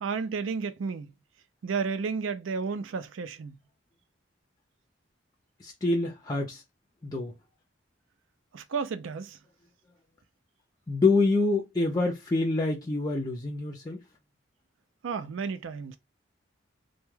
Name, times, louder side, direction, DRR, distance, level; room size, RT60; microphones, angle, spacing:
voice 1, 0.0-1.1 1.6-3.6 8.5-9.4 15.0-16.0, right 5 dB, 85° right, 0.4 m, -32 dB
voice 2, 5.6-6.6 7.0-7.3 10.9-14.0, left 3 dB, 20° left, 0.4 m, -26 dB
2.2 x 2.1 x 3.1 m
head